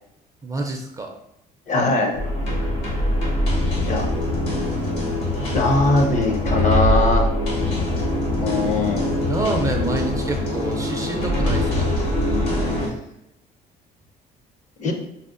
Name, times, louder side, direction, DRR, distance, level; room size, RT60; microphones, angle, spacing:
voice 1, 0.4-1.1 9.3-11.8, right 2 dB, 20° right, 2 dB, 0.4 m, -27 dB
voice 2, 1.7-2.2 3.8-4.1 5.5-7.3 8.4-9.1 14.8-14.9, left 2 dB, 45° left, 3 dB, 0.6 m, -21 dB
sound 1, 2.1-12.9, left 1 dB, 75° left, 1.3 m, -23 dB
5.4 x 2.1 x 2.5 m, 0.79 s
cardioid pair, 110°, 17 cm